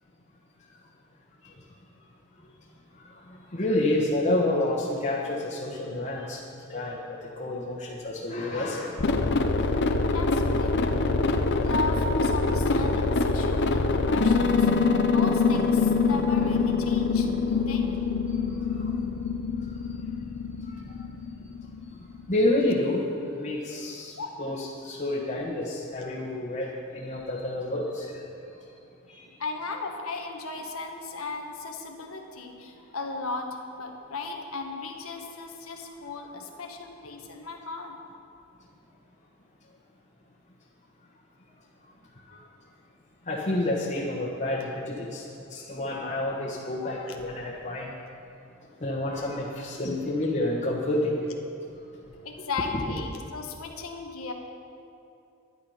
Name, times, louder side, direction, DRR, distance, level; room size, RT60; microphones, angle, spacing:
voice 1, 3.3-6.4 6.7-9.1 18.7-18.8 20.6-20.9 22.3-28.2 29.1-29.3 42.3-42.4 43.3-47.9 48.8-51.1, left 1 dB, 35° left, -5 dB, 1.3 m, -29 dB
sound 1, 9.0-22.2, left 4 dB, 55° left, 0.7 m, -24 dB
voice 2, 10.1-11.3 11.6-14.8 15.1-17.9 24.2-24.3 29.4-38.0 52.2-54.3, left 3 dB, 80° left, 2 dB, 1.4 m, -36 dB
12.5 x 10.5 x 5.7 m, 2.7 s
head